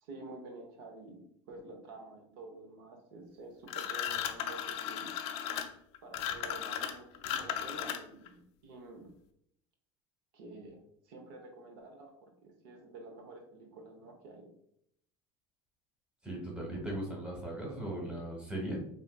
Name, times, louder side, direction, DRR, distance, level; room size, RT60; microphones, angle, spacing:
voice 1, 0.0-5.1 6.0-9.1 10.3-10.8 11.0-14.5, right 2 dB, 90° right, 4 dB, 0.6 m, -49 dB
sound 1, 3.7-8.3, left 9 dB, 60° left, 0.4 m, -36 dB
voice 2, 16.2-18.8, right 1 dB, 10° right, -1 dB, 0.9 m, -38 dB
3.6 x 2.4 x 2.2 m, 0.72 s
cardioid pair, 135°, 12 cm